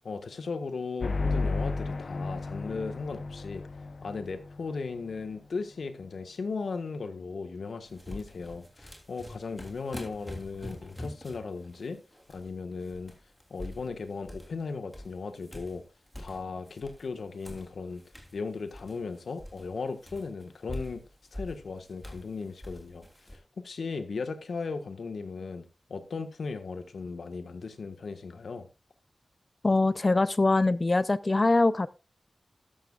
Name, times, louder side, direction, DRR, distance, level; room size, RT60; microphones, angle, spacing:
voice 1, 0.0-3.7 4.0-12.0 12.3-13.1 13.5-15.8 16.2-18.0 18.3-21.0 21.3-28.7, left 4 dB, 85° left, 1.5 m, -37 dB
sound 1, 1.0-4.6, left 3 dB, 60° left, 0.8 m, -32 dB
sound 2, 7.8-12.5 12.8-14.6 14.9-17.1 17.4-23.4, left 1 dB, 5° left, 3.2 m, -45 dB
voice 2, 29.6-31.9, left 2 dB, 35° left, 0.5 m, -23 dB
13.0 x 12.5 x 2.4 m
wide cardioid pair, 105°, 0 cm